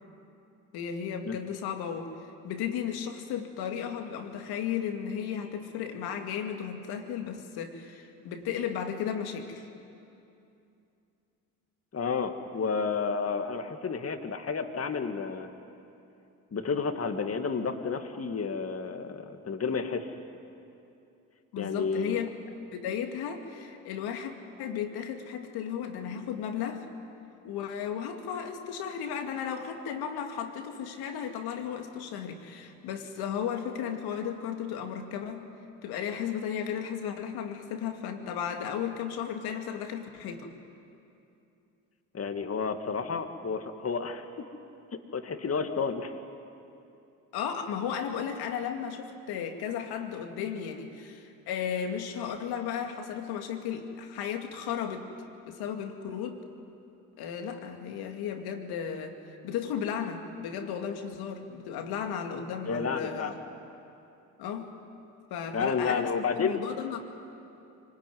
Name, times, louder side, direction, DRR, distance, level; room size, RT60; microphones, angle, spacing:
voice 1, 0.7-2.1 2.4-9.7 21.5-22.3 22.7-24.3 24.6-26.9 27.4-35.5 35.8-40.5 47.3-55.1 55.4-56.4 57.2-63.3 64.4-64.7 65.3-67.0, left 8 dB, 70° left, 5 dB, 2.5 m, -34 dB
voice 2, 11.9-15.5 16.5-20.1 21.6-22.2 42.1-44.3 45.1-46.1 62.7-63.3 65.5-66.6, left 5 dB, 35° left, 6 dB, 2.3 m, -31 dB
25.0 x 19.5 x 9.6 m, 2.8 s
hypercardioid pair, 65°, 39 cm